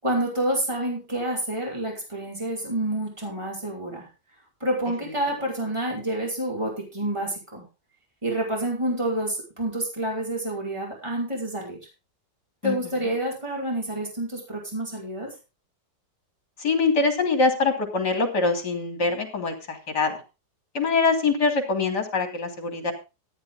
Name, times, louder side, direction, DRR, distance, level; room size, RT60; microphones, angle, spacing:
voice 1, 0.0-4.1 4.6-7.6 8.2-11.8 12.6-15.3, right 1 dB, 15° right, -2 dB, 5.2 m, -28 dB
voice 2, 16.6-20.2 20.7-22.9, left 4 dB, 65° left, 5 dB, 3.7 m, -24 dB
14.5 x 10.0 x 3.8 m, 0.29 s
omnidirectional pair, 2.0 m